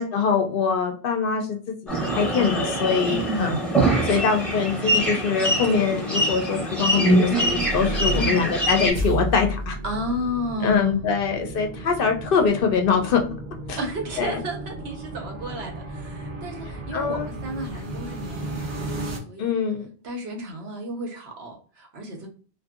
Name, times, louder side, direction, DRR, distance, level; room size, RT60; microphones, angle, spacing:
voice 1, 0.0-3.7 4.0-9.8 10.6-13.2 13.7-13.8 14.2-14.4 16.9-17.3 19.4-19.9, left 6 dB, 65° left, 4 dB, 0.7 m, -23 dB
sound 1, 1.9-8.9, right 1 dB, ahead, 0.8 m, -23 dB
voice 2, 3.1-3.6 8.2-8.5 9.8-11.1 11.7-11.8 13.7-19.6 20.0-22.3, equal, 80° right, 1 dB, 1.1 m, -32 dB
sound 2, 7.3-19.2, right 1 dB, 50° right, 0.8 m, -33 dB
2.6 x 2.5 x 2.4 m, 0.41 s
omnidirectional pair, 1.1 m